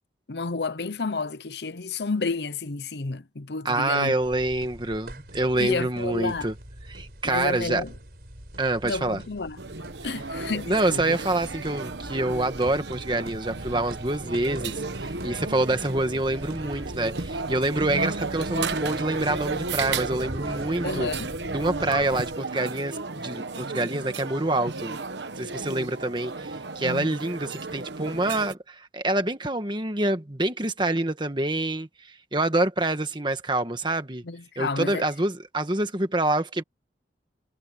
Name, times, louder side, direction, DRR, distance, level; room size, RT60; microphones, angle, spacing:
voice 1, 0.3-4.1 5.6-6.5 7.2-7.9 8.8-9.6 10.0-11.2 20.8-21.3 26.8-27.1 34.2-35.0, left 3 dB, 70° left, 0.9 m, -31 dB
voice 2, 3.6-6.5 6.9-7.8 8.6-9.2 10.0-10.1 10.7-21.1 21.5-25.0 25.4-34.2 34.6-36.6, right 2 dB, 25° right, 1.5 m, -26 dB
sound 1, 4.2-22.4, right 1 dB, 60° right, 4.7 m, -42 dB
sound 2, 9.6-28.5, right 3 dB, 75° right, 1.2 m, -34 dB
head